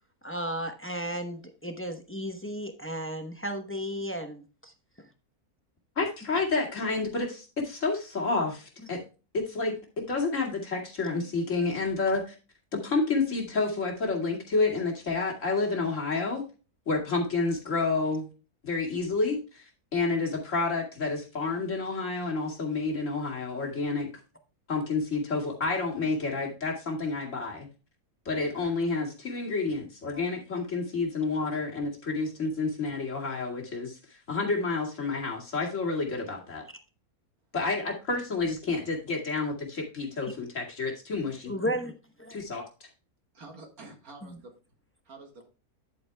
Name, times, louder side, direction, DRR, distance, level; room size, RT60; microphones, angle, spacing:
voice 1, 0.2-4.7 5.0-5.1 41.5-41.9 42.2-42.4 44.2-44.4, equal, 10° left, 6 dB, 0.6 m, -34 dB
voice 2, 6.0-9.0 9.3-12.3 12.7-16.4 16.9-18.3 18.6-19.6 19.9-24.1 24.7-27.7 28.3-36.6 37.5-41.5 42.3-42.7, left 3 dB, 50° left, -1 dB, 2.7 m, -29 dB
voice 3, 43.3-44.5 45.1-45.5, right 3 dB, 70° right, 3 dB, 2.0 m, -48 dB
11.0 x 8.3 x 2.2 m, 0.33 s
omnidirectional pair, 1.6 m